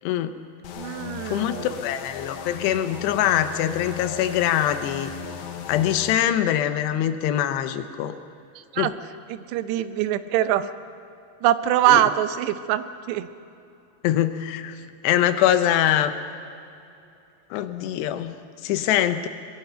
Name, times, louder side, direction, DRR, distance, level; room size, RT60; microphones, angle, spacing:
voice 1, 0.0-0.3 1.3-1.6 1.8-5.1 5.7-8.1 8.8-8.9 11.9-12.0 14.0-16.1 17.5-18.4 18.6-19.3, left 11 dB, 85° left, 10 dB, 3.0 m, -23 dB
sound 1, 0.6-6.2, left 8 dB, 70° left, 1.9 m, -37 dB
voice 2, 0.8-1.8 8.6-8.9 9.3-10.7 11.4-13.3, right 12 dB, 90° right, 11 dB, 3.0 m, -23 dB
22.5 x 22.5 x 5.7 m, 2.7 s
omnidirectional pair, 4.8 m